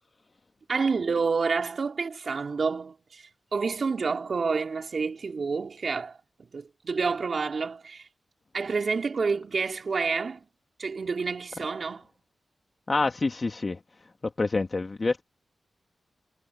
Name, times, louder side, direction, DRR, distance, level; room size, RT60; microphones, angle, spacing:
voice 1, 0.7-3.2 3.5-8.1 8.5-10.4 10.8-12.1, right 4 dB, 60° right, 3.9 m, -29 dB
voice 2, 12.9-13.8 14.4-15.2, left 3 dB, 45° left, 1.7 m, -27 dB
cardioid pair, 60°, 0 cm